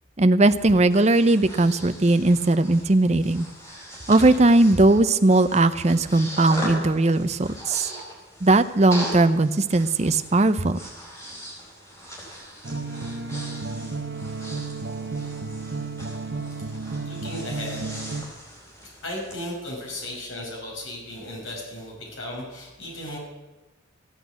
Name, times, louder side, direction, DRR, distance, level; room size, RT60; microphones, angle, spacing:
voice 1, 0.2-3.5 4.1-7.9 8.4-10.8, right 2 dB, 35° right, 11 dB, 0.6 m, -19 dB
Breathing, 0.7-19.4, equal, 15° left, 4.7 m, -40 dB
sound 1, 12.6-18.2, right 3 dB, 55° right, 0.9 m, -32 dB
voice 2, 17.0-17.9 19.0-23.2, left 1 dB, 80° left, -1 dB, 6.0 m, -35 dB
15.5 x 8.6 x 8.1 m, 1.1 s
head